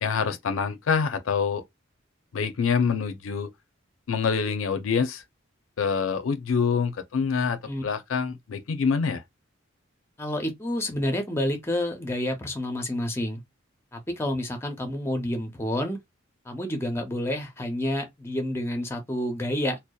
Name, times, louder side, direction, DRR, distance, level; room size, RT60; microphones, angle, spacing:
voice 1, 0.0-1.6 2.3-3.5 4.1-5.2 5.8-9.2, left 6 dB, 80° left, 0.5 m, -26 dB
voice 2, 10.2-13.4 13.9-16.0 16.5-19.8, left 1 dB, 10° left, 0.5 m, -29 dB
2.6 x 2.0 x 2.2 m
head